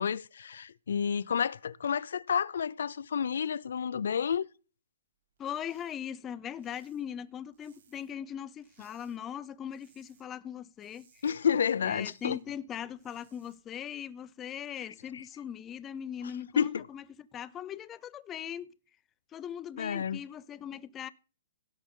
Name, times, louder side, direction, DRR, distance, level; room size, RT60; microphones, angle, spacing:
voice 1, 0.0-4.5 11.2-12.4 15.1-15.2 16.6-16.9 19.8-20.2, left 7 dB, 75° left, 0.4 m, -30 dB
voice 2, 5.4-11.2 11.8-18.7 19.3-21.1, left 9 dB, 15° left, 0.4 m, -40 dB
sound 1, 5.4-6.0 6.2-8.2 8.6-9.2 9.5-10.3 10.6-12.4 12.8-13.6, right 6 dB, 60° right, 3.9 m, -67 dB
16.5 x 6.0 x 3.7 m
hypercardioid pair, 155°, 0 cm